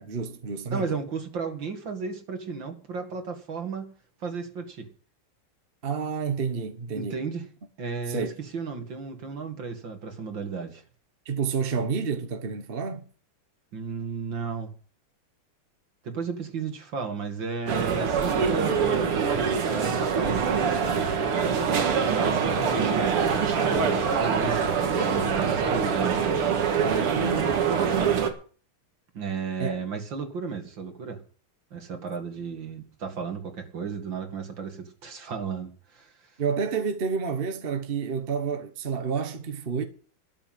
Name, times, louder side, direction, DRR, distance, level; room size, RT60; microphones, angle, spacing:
voice 1, 0.0-0.8 5.8-7.2 8.1-8.3 11.2-13.1 26.8-27.5 29.6-29.8 36.4-39.8, right 5 dB, 35° right, 1.1 m, -29 dB
voice 2, 0.7-3.9 4.2-4.9 6.9-7.5 7.8-10.8 13.7-14.7 16.0-20.7 21.4-26.2 29.1-31.2 31.7-36.4, right 5 dB, 60° right, 2.8 m, -34 dB
sound 1, 17.7-28.3, right 6 dB, 80° right, 2.6 m, -24 dB
12.5 x 8.4 x 7.6 m
omnidirectional pair, 2.4 m